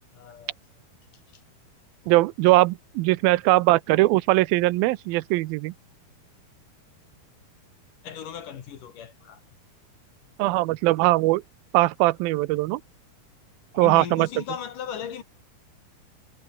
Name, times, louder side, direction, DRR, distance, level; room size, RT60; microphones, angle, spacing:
voice 1, 0.1-0.5 8.0-9.4 13.8-15.2, left 8 dB, 65° left, 3.5 m, -37 dB
voice 2, 2.1-5.7 10.4-11.4 11.7-12.8 13.7-14.3, right 19 dB, 80° right, 2.4 m, -20 dB
omnidirectional pair, 4.3 m